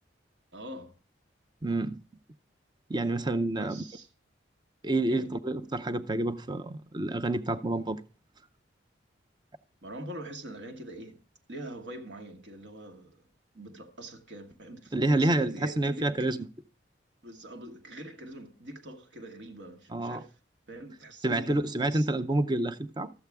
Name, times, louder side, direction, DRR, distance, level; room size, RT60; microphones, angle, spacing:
voice 1, 0.5-0.9 3.5-4.1 5.1-5.3 9.8-11.2 11.5-13.2 13.5-16.1 17.2-20.3 20.7-21.5 21.9-22.1, right 1 dB, 70° right, 1.3 m, -43 dB
voice 2, 1.6-2.0 2.9-3.8 4.8-8.0 14.9-16.5 19.9-20.2 21.2-23.1, right 2 dB, 20° right, 0.5 m, -28 dB
12.5 x 8.0 x 3.4 m
head